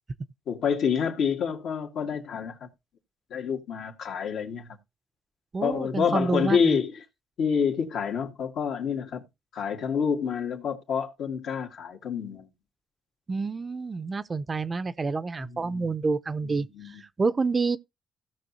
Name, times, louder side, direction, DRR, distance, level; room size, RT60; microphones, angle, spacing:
voice 1, 0.5-2.7 3.3-4.8 5.6-7.0 7.4-9.3 9.5-12.5 15.4-15.9 16.4-17.0, left 6 dB, 75° left, 2.0 m, -28 dB
voice 2, 5.5-6.8 13.3-16.7 17.2-17.8, right 4 dB, 30° right, 0.6 m, -28 dB
16.5 x 6.1 x 2.7 m
cardioid pair, 90°, 0 cm